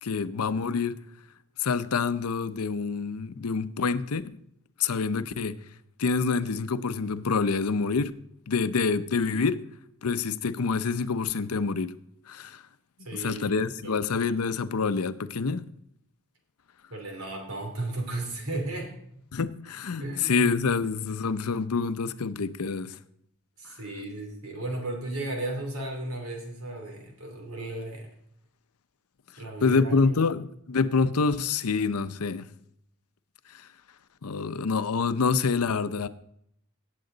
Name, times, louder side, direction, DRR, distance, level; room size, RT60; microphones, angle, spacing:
voice 1, 0.0-1.0 1.6-4.4 4.8-5.6 6.0-8.1 8.5-9.6 10.0-11.9 12.3-12.6 13.1-15.6 19.3-23.0 29.6-32.5 34.2-36.1, left 4 dB, 80° left, 0.6 m, -27 dB
voice 2, 13.0-14.1 16.9-18.9 20.0-20.5 23.6-28.1 29.4-30.2, right 2 dB, 70° right, 3.0 m, -35 dB
17.5 x 7.7 x 3.9 m
head